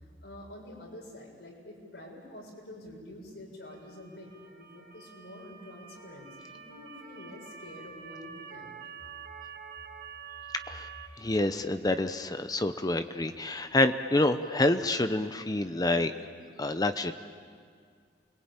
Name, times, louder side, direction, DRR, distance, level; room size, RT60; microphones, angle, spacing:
voice 1, 0.2-8.7, left 1 dB, 80° left, -2 dB, 7.6 m, -47 dB
Motor vehicle (road) / Siren, 3.6-11.1, right 7 dB, 60° right, 3.8 m, -47 dB
voice 2, 11.2-16.1 16.6-17.1, left 2 dB, 20° left, 9 dB, 0.8 m, -27 dB
28.5 x 22.5 x 9.0 m, 2.1 s
head